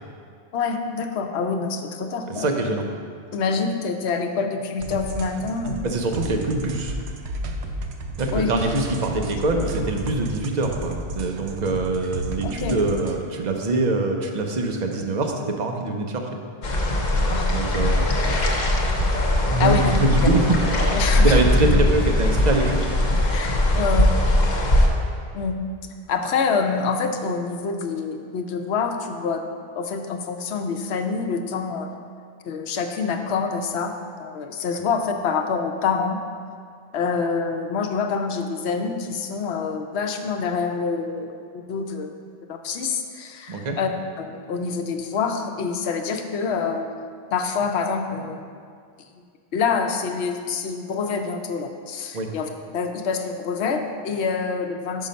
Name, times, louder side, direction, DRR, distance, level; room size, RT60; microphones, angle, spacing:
voice 1, 0.5-2.5 3.3-5.8 8.3-8.5 12.4-12.8 17.3-17.5 18.2-18.6 19.6-19.9 20.9-21.4 23.3-24.1 25.3-25.6 26.1-29.4 29.8-31.9 32.4-36.2 36.9-42.1 42.5-43.9 44.2-46.9 47.3-48.4 49.1-49.2 49.5-55.1, left 5 dB, 85° left, 5 dB, 0.9 m, -26 dB
voice 2, 2.3-2.9 5.8-7.0 8.2-16.2 17.5-18.1 19.5-20.5 21.1-22.8 43.5-43.8 52.1-52.3, right 2 dB, 50° right, 3 dB, 0.7 m, -24 dB
sound 1, 4.8-13.2, right 2 dB, 85° right, 0.9 m, -32 dB
sound 2, 16.6-24.9, left 1 dB, 50° left, 0.8 m, -20 dB
5.6 x 5.4 x 5.1 m, 2.2 s
omnidirectional pair, 1.1 m